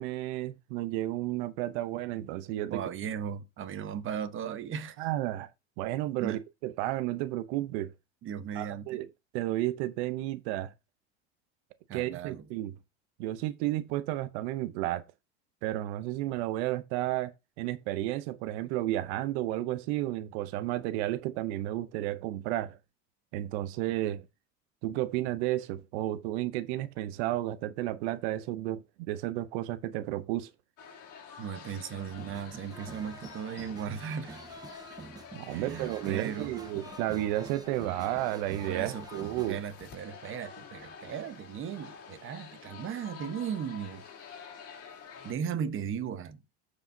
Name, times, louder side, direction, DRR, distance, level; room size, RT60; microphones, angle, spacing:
voice 1, 0.0-2.8 5.0-5.5 5.8-7.9 8.6-9.1 9.3-10.7 11.9-12.7 13.2-15.0 15.6-22.8 23.3-24.3 24.8-30.5 35.3-39.6, right 15 dB, 70° right, 0.8 m, -32 dB
voice 2, 2.7-5.1 6.2-6.4 8.2-9.0 11.9-12.5 31.4-34.4 35.5-36.6 38.6-44.0 45.2-46.4, right 8 dB, 35° right, 1.1 m, -37 dB
sound 1, 30.8-45.3, left 6 dB, 45° left, 3.3 m, -48 dB
sound 2, 32.1-39.6, right 4 dB, 10° right, 0.5 m, -48 dB
14.0 x 4.9 x 2.7 m
supercardioid pair, 110°, 35 cm